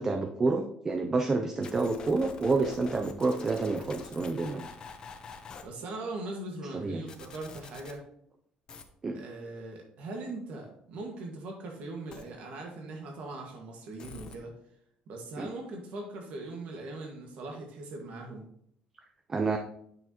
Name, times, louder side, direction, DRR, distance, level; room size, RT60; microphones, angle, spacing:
voice 1, 0.0-4.7 6.7-7.1 9.0-9.2 15.4-15.5 19.3-19.6, right 3 dB, 20° right, 6 dB, 0.4 m, -29 dB
sound 1, 1.6-5.6 7.1-7.9 8.7-8.8 12.1-12.2 14.0-14.4, left 5 dB, 30° left, 0.7 m, -45 dB
voice 2, 5.4-8.0 9.1-14.5 15.1-18.5, right 2 dB, 55° right, 1 dB, 1.6 m, -40 dB
9.2 x 6.1 x 2.9 m, 0.68 s
cardioid pair, 180°, 3 cm